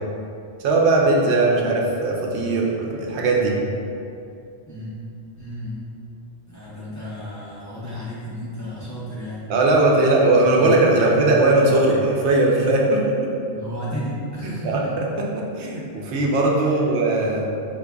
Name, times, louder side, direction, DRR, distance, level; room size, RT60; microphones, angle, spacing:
voice 1, 0.6-3.5 9.5-13.3 14.4-17.5, right 2 dB, 85° right, -1 dB, 0.9 m, -19 dB
voice 2, 5.4-5.8 6.5-9.5 10.5-11.4 13.5-14.7 16.7-16.9, equal, 20° left, -10 dB, 0.5 m, -33 dB
4.8 x 2.5 x 2.2 m, 2.5 s
omnidirectional pair, 1.1 m